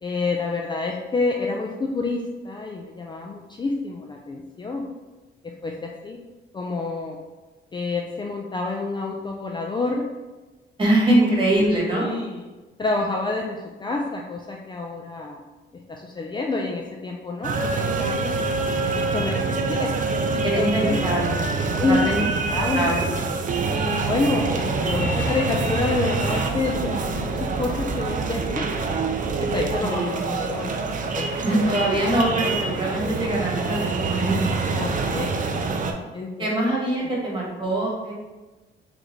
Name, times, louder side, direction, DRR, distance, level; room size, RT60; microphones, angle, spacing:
voice 1, 0.0-4.9 5.6-6.2 6.5-7.2 7.7-10.0 11.9-12.4 12.8-15.4 15.9-18.4 18.9-19.4 19.7-19.9 20.3-21.0 21.8-23.1 23.7-29.0 29.4-30.7 31.1-31.2 31.5-31.8 34.7-35.3 36.1-36.5 37.0-37.1, left 3 dB, 25° left, 0 dB, 0.4 m, -28 dB
voice 2, 10.8-12.1 20.4-21.4 21.7-22.2 22.7-23.1 29.8-30.2 31.4-34.5 36.4-38.1, right 1 dB, 25° right, -3 dB, 1.5 m, -23 dB
sound 1, 17.4-35.9, right 3 dB, 40° right, 0.5 m, -25 dB
3.9 x 3.3 x 3.1 m, 1.2 s
cardioid pair, 90°, 20 cm